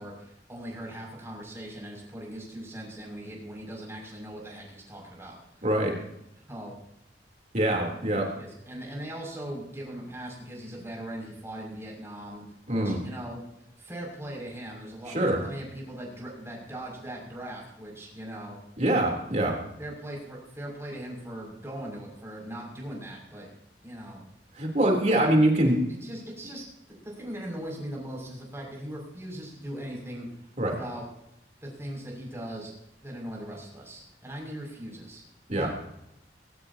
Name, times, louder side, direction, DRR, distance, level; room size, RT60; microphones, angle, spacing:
voice 1, 0.0-5.6 6.5-6.7 8.4-12.4 12.7-13.4 13.8-18.6 19.8-23.5 23.8-24.2 26.0-31.0 31.6-32.7 33.0-35.2 35.5-35.8, right 1 dB, 15° right, -2 dB, 6.4 m, -40 dB
voice 2, 5.6-6.0 7.5-8.3 12.7-13.0 15.1-15.4 18.8-19.6 24.6-25.8 30.6-30.8 35.5-35.7, right 1 dB, 40° right, 0 dB, 3.4 m, -24 dB
20.0 x 18.0 x 2.9 m, 0.81 s
head